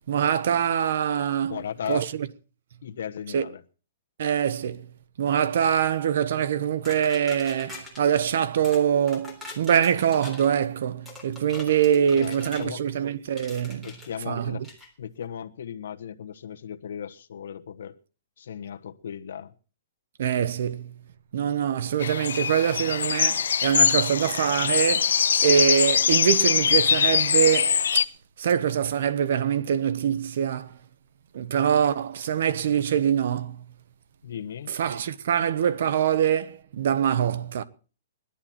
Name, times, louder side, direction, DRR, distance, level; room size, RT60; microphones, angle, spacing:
voice 1, 0.1-1.6 1.9-2.1 3.3-3.5 4.2-4.8 5.2-13.9 14.3-14.6 20.2-20.9 21.3-28.1 28.4-30.7 31.3-33.6 34.7-37.6, right 8 dB, 60° right, 1.1 m, -24 dB
voice 2, 1.4-2.0 2.8-3.6 12.1-12.8 13.8-14.6 15.0-17.9 18.4-19.5 34.2-34.7, left 8 dB, 70° left, 1.3 m, -36 dB
sound 1, 6.8-8.0 8.6-8.8 9.1-10.5 11.0-12.7 13.4-14.1 14.6-14.9, left 3 dB, 5° right, 3.6 m, -43 dB
sound 2, 22.0-28.0, left 7 dB, 85° left, 0.7 m, -22 dB
19.0 x 12.0 x 4.4 m
hypercardioid pair, 170°, 0 cm